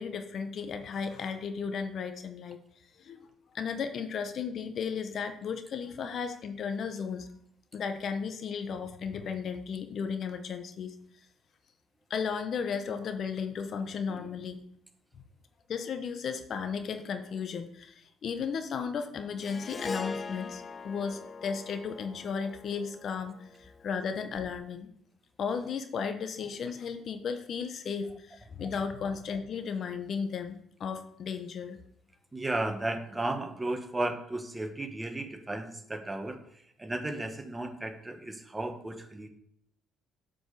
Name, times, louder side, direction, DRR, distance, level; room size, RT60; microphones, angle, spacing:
voice 1, 0.0-2.6 3.0-3.3 3.5-7.3 7.7-10.9 12.1-14.6 15.7-24.9 25.4-31.8, left 6 dB, 55° left, 8 dB, 1.0 m, -35 dB
Harp, 19.4-23.9, left 4 dB, 40° left, 0.5 m, -41 dB
voice 2, 32.3-36.4 36.8-39.3, right 2 dB, 20° right, 7 dB, 1.5 m, -34 dB
7.8 x 5.3 x 6.8 m, 0.68 s
supercardioid pair, 65°, 0 cm